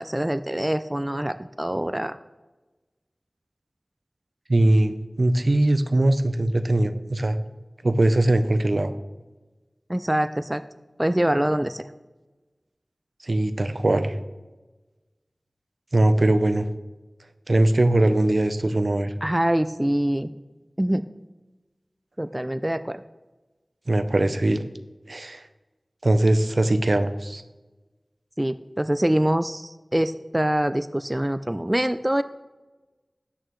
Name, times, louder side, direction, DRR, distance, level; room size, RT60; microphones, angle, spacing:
voice 1, 0.0-2.2 9.9-10.6 11.0-11.8 19.2-20.3 20.8-21.1 22.2-23.0 28.4-32.2, right 1 dB, 15° right, 11 dB, 0.3 m, -24 dB
voice 2, 4.5-7.4 7.8-8.9 13.2-14.1 15.9-16.7 17.5-19.1 23.9-24.6 25.1-25.5 26.0-27.4, right 1 dB, 65° right, 10 dB, 0.6 m, -21 dB
12.5 x 8.7 x 3.1 m, 1.2 s
wide cardioid pair, 55°, 0 cm